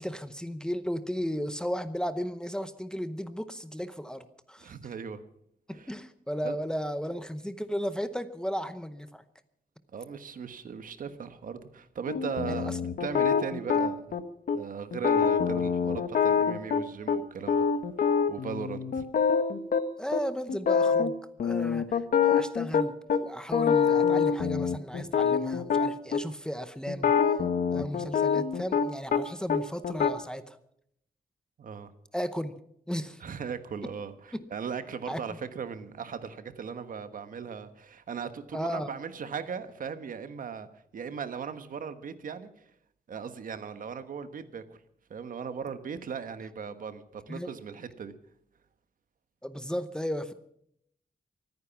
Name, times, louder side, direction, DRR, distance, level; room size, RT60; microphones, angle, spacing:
voice 1, 0.0-4.7 5.7-9.2 12.5-12.8 20.0-21.1 21.4-27.4 27.7-30.6 32.1-32.6 32.9-33.2 34.3-34.4 35.1-35.2 38.5-38.9 47.3-47.5 49.4-50.3, equal, 5° left, 12 dB, 0.8 m, -35 dB
voice 2, 4.6-5.2 5.7-5.9 6.4-6.6 9.9-12.7 13.0-14.1 14.5-17.6 18.3-19.1 31.6-31.9 33.2-42.5 43.1-44.8 45.1-48.1, right 6 dB, 65° right, 10 dB, 1.3 m, -38 dB
sound 1, 12.1-14.2 14.5-14.6 14.9-17.2 17.5-19.8 20.1-20.2 20.5-21.1 21.4-23.2 23.5-26.2 26.9-29.2 29.5-30.1, left 6 dB, 70° left, 1.2 m, -25 dB
24.5 x 9.5 x 5.9 m, 0.71 s
wide cardioid pair, 150°, 15 cm